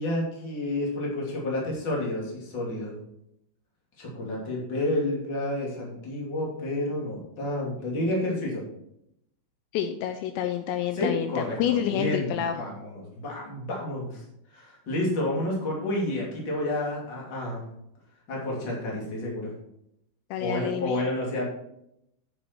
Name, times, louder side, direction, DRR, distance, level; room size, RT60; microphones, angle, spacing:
voice 1, 0.0-3.0 4.0-8.6 10.9-14.2 14.5-17.6 18.3-19.5 20.4-21.5, left 1 dB, 30° left, -3 dB, 2.6 m, -30 dB
voice 2, 9.7-12.7 20.3-21.0, left 10 dB, 85° left, 8 dB, 2.5 m, -28 dB
10.5 x 7.1 x 4.6 m, 0.80 s
omnidirectional pair, 5.5 m